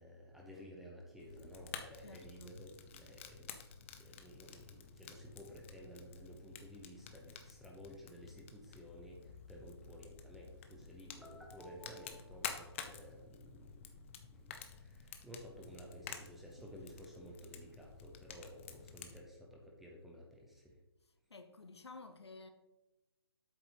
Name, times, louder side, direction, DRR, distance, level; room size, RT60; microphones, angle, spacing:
voice 1, 0.0-20.8, equal, ahead, 0.7 m, -54 dB
Fire, 1.2-19.2, left 7 dB, 30° left, 0.7 m, -51 dB
voice 2, 2.0-2.6 21.3-22.5, left 3 dB, 75° left, 0.9 m, -53 dB
8.2 x 5.9 x 3.9 m
figure-of-eight pair, 145°, 14 cm